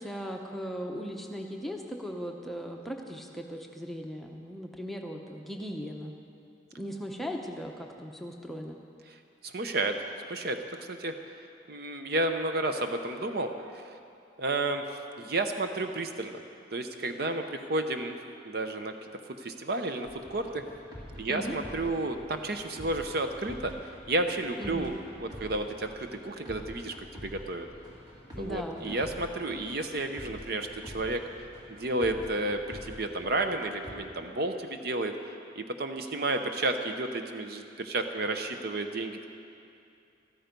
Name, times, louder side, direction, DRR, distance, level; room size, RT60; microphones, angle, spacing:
voice 1, 0.0-6.1 6.8-8.8 21.3-21.6 24.6-24.9 28.3-29.0, equal, ahead, 1 dB, 0.8 m, -38 dB
voice 2, 9.4-10.0 10.3-11.1 11.7-13.9 14.4-16.4 16.7-18.2 18.4-18.9 19.4-20.6 21.1-23.7 24.1-27.7 28.4-31.2 31.7-35.1 35.6-39.3, right 2 dB, 55° right, 6 dB, 0.8 m, -32 dB
sound 1, 20.0-33.9, equal, 25° right, 2.5 m, -47 dB
13.5 x 13.5 x 5.3 m, 2.5 s
head